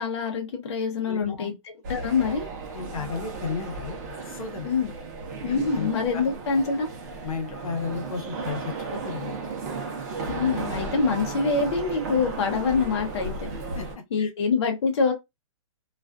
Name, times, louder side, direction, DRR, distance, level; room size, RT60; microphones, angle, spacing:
voice 1, 0.0-1.5 1.9-2.5 4.6-4.9 5.4-6.9 10.3-13.3 14.1-15.1, left 5 dB, 55° left, 0.7 m, -25 dB
voice 2, 1.1-1.5 2.7-4.0 4.2-4.8 5.5-6.2 7.2-9.5 13.7-14.3, left 5 dB, 85° left, 0.9 m, -34 dB
sound 1, 1.8-13.9, right 3 dB, 30° right, 0.7 m, -34 dB
2.4 x 2.3 x 2.2 m
hypercardioid pair, 170°, 17 cm